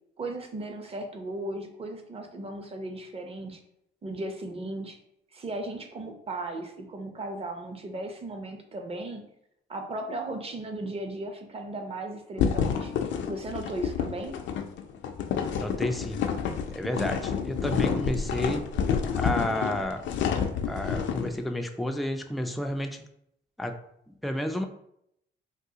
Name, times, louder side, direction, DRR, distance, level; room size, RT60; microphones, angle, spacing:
voice 1, 0.2-3.6 4.0-5.0 5.3-9.3 9.7-12.9 13.3-14.4, right 2 dB, 30° right, 4 dB, 0.6 m, -36 dB
sound 1, 12.4-21.3, left 7 dB, 70° left, 0.4 m, -29 dB
voice 2, 15.6-16.2 16.7-18.7 19.2-20.1 20.7-23.0 23.6-23.8 24.1-24.6, left 1 dB, ahead, 5 dB, 0.3 m, -31 dB
3.6 x 2.3 x 2.8 m, 0.75 s
cardioid pair, 90°, 20 cm